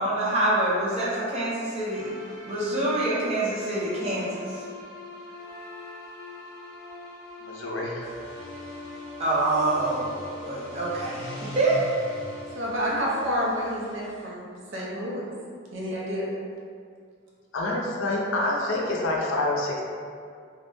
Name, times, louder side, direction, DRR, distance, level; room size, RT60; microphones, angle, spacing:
voice 1, 0.0-2.1 2.4-4.7 9.2-11.8, right 2 dB, 30° right, -7 dB, 0.5 m, -26 dB
sound 1, 1.9-13.7, left 2 dB, ahead, 0.8 m, -43 dB
voice 2, 7.4-8.1 17.5-19.8, left 2 dB, 80° left, -2 dB, 0.5 m, -27 dB
sound 2, 7.9-14.2, equal, 40° left, 0.6 m, -44 dB
voice 3, 12.5-15.3 15.7-16.3, equal, 80° right, -4 dB, 0.6 m, -29 dB
2.2 x 2.0 x 3.1 m, 2.2 s
head